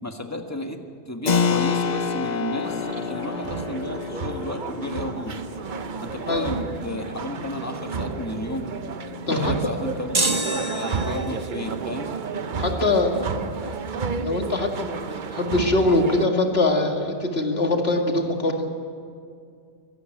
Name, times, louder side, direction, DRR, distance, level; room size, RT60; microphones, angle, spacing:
voice 1, 0.0-5.4 6.0-8.7 9.3-12.1, left 1 dB, 10° left, 4 dB, 1.4 m, -33 dB
Keyboard (musical), 1.3-11.6, left 6 dB, 75° left, 0.4 m, -30 dB
sound 1, 2.6-16.3, right 5 dB, 55° right, 0.5 m, -32 dB
voice 2, 9.3-9.7 12.6-13.7 14.2-18.7, left 2 dB, 35° left, 3 dB, 2.3 m, -23 dB
sound 2, 10.1-11.5, right 2 dB, 20° right, 1.2 m, -26 dB
24.0 x 14.0 x 9.1 m, 2.2 s
omnidirectional pair, 1.9 m